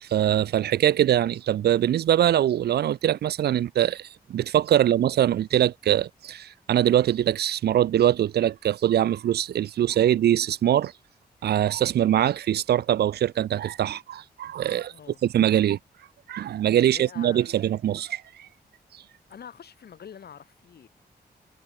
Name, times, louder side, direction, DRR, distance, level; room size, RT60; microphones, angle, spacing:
voice 1, 0.0-10.9 11.4-14.9 15.2-15.8 16.3-18.5, right 11 dB, 80° right, 0.4 m, -23 dB
voice 2, 14.9-15.2 16.9-17.6 19.3-20.9, left 8 dB, 75° left, 2.3 m, -45 dB
cardioid pair, 90°, 17 cm